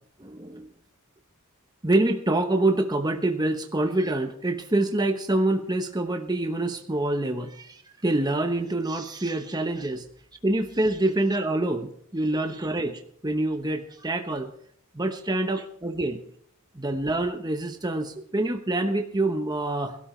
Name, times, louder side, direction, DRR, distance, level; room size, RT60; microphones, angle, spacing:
voice 1, 0.2-0.7 1.8-10.1 10.4-14.5 14.9-16.2 16.7-20.0, right 2 dB, 20° right, 5 dB, 1.0 m, -26 dB
21.0 x 12.5 x 3.2 m, 0.65 s
head